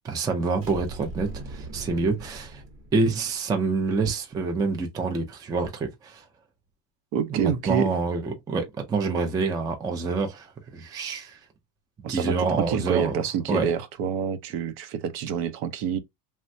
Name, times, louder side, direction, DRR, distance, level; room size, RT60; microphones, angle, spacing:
voice 1, 0.0-2.6 2.9-6.2 7.3-11.4 12.1-13.2 13.5-13.7, right 4 dB, 10° right, 0.3 m, -27 dB
sound 1, 0.6-3.4, right 2 dB, 30° right, 0.9 m, -40 dB
voice 2, 7.1-7.9 12.0-16.0, right 7 dB, 60° right, 0.7 m, -27 dB
3.3 x 2.1 x 2.6 m
cardioid pair, 130°, 42 cm